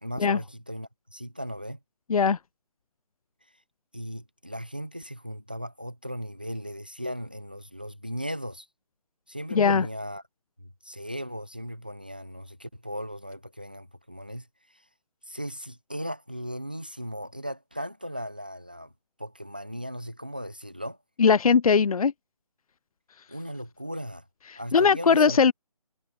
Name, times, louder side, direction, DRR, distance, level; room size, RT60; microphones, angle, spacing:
voice 1, 0.0-1.8 3.9-8.7 9.3-10.2 10.6-14.8 15.3-18.9 19.2-21.0 23.3-24.3 24.6-25.4, equal, 15° right, 0.5 m, -37 dB
voice 2, 9.5-9.9 21.2-22.1 24.7-25.5, left 6 dB, 65° left, 0.5 m, -20 dB
hypercardioid pair, 180°, 20 cm